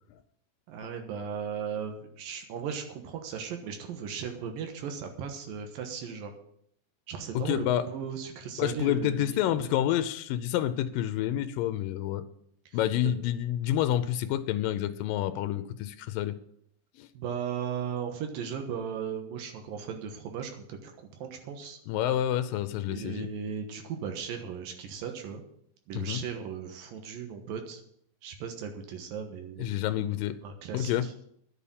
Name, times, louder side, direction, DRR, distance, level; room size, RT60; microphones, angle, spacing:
voice 1, 0.7-6.3 7.1-9.7 12.7-13.1 17.1-21.8 22.9-25.4 25.9-27.8 28.2-29.9 30.4-31.1, right 7 dB, 85° right, 5 dB, 3.0 m, -37 dB
voice 2, 7.3-7.9 8.6-12.2 12.7-16.3 17.0-17.1 21.9-23.3 26.0-26.2 29.6-30.4 30.7-31.1, left 11 dB, 85° left, 12 dB, 2.4 m, -28 dB
11.0 x 7.1 x 8.5 m, 0.69 s
omnidirectional pair, 3.9 m